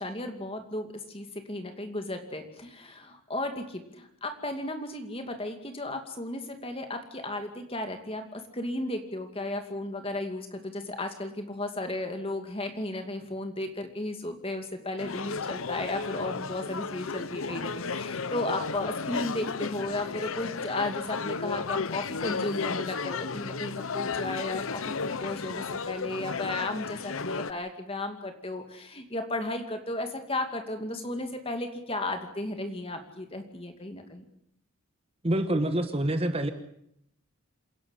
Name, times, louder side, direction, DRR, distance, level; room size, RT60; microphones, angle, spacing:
voice 1, 0.0-34.2, left 2 dB, 25° left, 6 dB, 2.4 m, -34 dB
sound 1, 15.0-27.5, left 5 dB, 65° left, 0.8 m, -33 dB
voice 2, 35.2-36.5, right 1 dB, 25° right, 8 dB, 1.1 m, -26 dB
28.0 x 11.0 x 9.9 m, 0.77 s
head